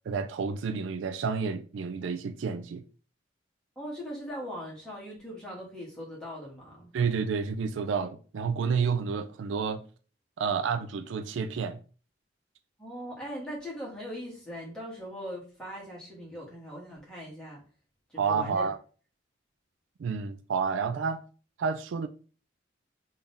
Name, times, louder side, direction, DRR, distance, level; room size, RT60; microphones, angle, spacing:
voice 1, 0.1-2.8 6.9-9.8 10.4-11.8 18.2-18.8 20.0-21.2 21.6-22.1, right 5 dB, 80° right, 0.4 m, -30 dB
voice 2, 3.7-6.9 12.8-17.6 18.1-18.7, equal, 5° left, 1.5 m, -40 dB
3.5 x 2.7 x 3.6 m
head